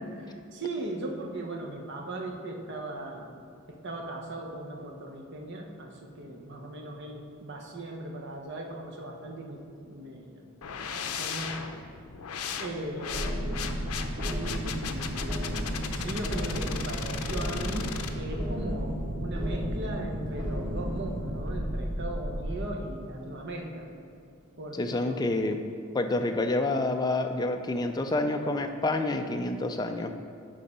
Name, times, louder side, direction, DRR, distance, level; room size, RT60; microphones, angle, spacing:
voice 1, 0.0-3.3 3.7-10.5 10.8-11.6 12.6-13.5 14.3-15.5 15.9-23.9 24.6-25.2, right 1 dB, 55° right, 1 dB, 0.9 m, -38 dB
sound 1, 10.6-18.1, left 6 dB, 90° left, 0.6 m, -37 dB
sound 2, 13.1-22.5, equal, 90° right, 1.5 m, -33 dB
voice 2, 24.8-25.6 25.9-30.1, left 2 dB, 20° left, 6 dB, 0.4 m, -28 dB
9.6 x 3.8 x 5.5 m, 2.4 s
head